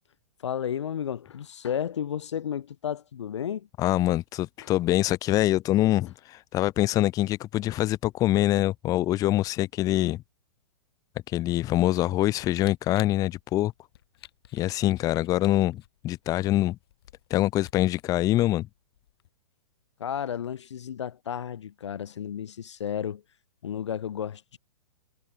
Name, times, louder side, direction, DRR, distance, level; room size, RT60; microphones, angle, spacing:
voice 1, 0.4-3.7 4.6-4.7 20.0-23.2 23.6-24.6, left 9 dB, 80° left, 0.4 m, -32 dB
voice 2, 3.8-10.2 11.3-13.7 14.5-16.8 17.3-18.7, left 15 dB, 25° left, 0.5 m, -24 dB
Camera, 12.5-19.3, left 12 dB, 60° left, 3.2 m, -52 dB
figure-of-eight pair, 115°, 15 cm